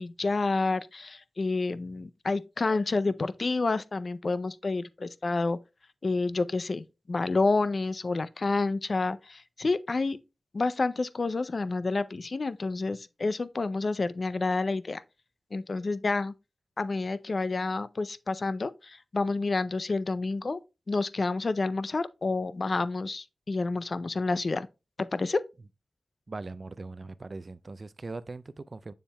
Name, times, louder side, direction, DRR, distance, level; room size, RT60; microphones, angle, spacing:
voice 1, 0.0-5.6 6.0-10.2 10.5-15.0 15.5-16.3 16.8-20.6 20.9-24.7 25.0-25.4, left 3 dB, 55° left, 0.4 m, -29 dB
voice 2, 26.3-28.9, right 3 dB, 45° right, 0.4 m, -40 dB
7.2 x 7.0 x 2.2 m
cardioid pair, 60°, 0 cm